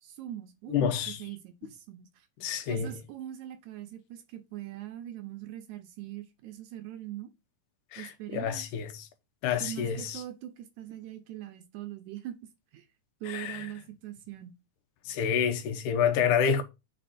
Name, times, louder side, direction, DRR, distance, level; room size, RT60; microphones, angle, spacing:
voice 1, 0.0-2.3 2.7-7.3 8.0-8.6 9.6-12.3 12.7-12.9 13.2-14.5, right 12 dB, 75° right, 1.9 m, -42 dB
voice 2, 0.7-1.2 2.4-2.9 7.9-9.1 9.4-10.2 13.3-13.7 15.1-16.6, left 7 dB, 75° left, 2.4 m, -28 dB
7.5 x 4.2 x 4.2 m
omnidirectional pair, 3.7 m